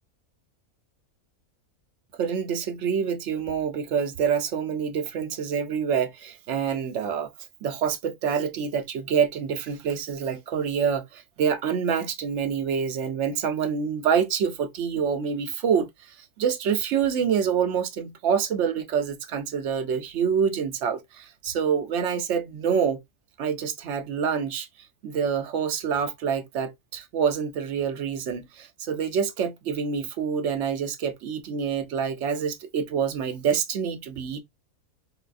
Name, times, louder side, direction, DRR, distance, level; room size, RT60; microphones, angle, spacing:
voice 1, 2.2-7.3 7.6-23.0 23.4-24.7 25.0-34.4, right 7 dB, 65° right, 0.8 m, -26 dB
3.9 x 2.3 x 2.4 m
omnidirectional pair, 1.5 m